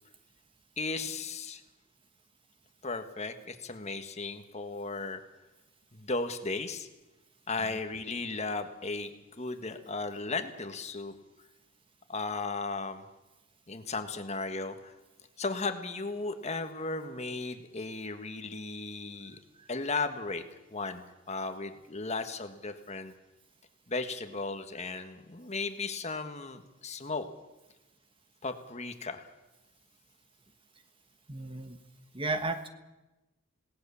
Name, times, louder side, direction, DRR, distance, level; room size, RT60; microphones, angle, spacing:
voice 1, 0.8-1.6 2.8-5.2 5.9-6.9 7.5-11.1 12.1-13.0 13.7-14.9 15.4-19.4 19.7-20.4 20.7-23.1 23.9-27.3 28.4-29.3, left 3 dB, 30° left, 8 dB, 1.6 m, -35 dB
voice 2, 31.3-31.8 32.1-32.7, right 2 dB, 25° right, 8 dB, 1.3 m, -34 dB
27.0 x 18.0 x 7.1 m, 1.1 s
head